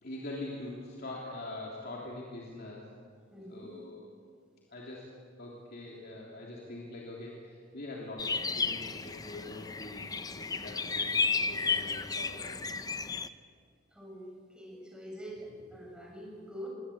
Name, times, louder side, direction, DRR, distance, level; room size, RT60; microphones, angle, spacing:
voice 1, 0.0-2.8 3.5-4.1 4.7-5.1 5.4-12.5, left 2 dB, 55° left, -3 dB, 3.2 m, -43 dB
voice 2, 3.3-3.8 13.9-16.7, equal, 5° right, -3 dB, 7.6 m, -45 dB
sound 1, 8.2-13.3, left 4 dB, 20° left, 0.7 m, -33 dB
23.0 x 18.0 x 8.6 m, 2.1 s
head